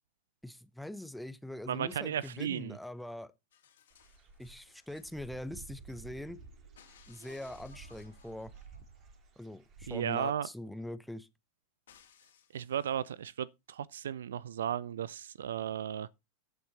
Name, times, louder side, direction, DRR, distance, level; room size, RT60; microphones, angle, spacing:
voice 1, 0.4-3.3 4.4-6.4 7.1-8.5 9.4-11.3, left 1 dB, ahead, 0.9 m, -43 dB
voice 2, 1.7-2.8 9.9-10.5 12.5-16.1, right 9 dB, 65° right, 0.5 m, -35 dB
sound 1, 3.5-5.1 6.8-8.7 11.9-13.3 14.5-14.6, left 9 dB, 60° left, 2.9 m, -63 dB
Dog / Bird, 3.9-10.2, right 4 dB, 30° right, 2.8 m, -54 dB
Laughter, 5.7-9.4, right 2 dB, 80° right, 6.2 m, -64 dB
14.5 x 7.4 x 4.1 m
figure-of-eight pair, 90°, 0 cm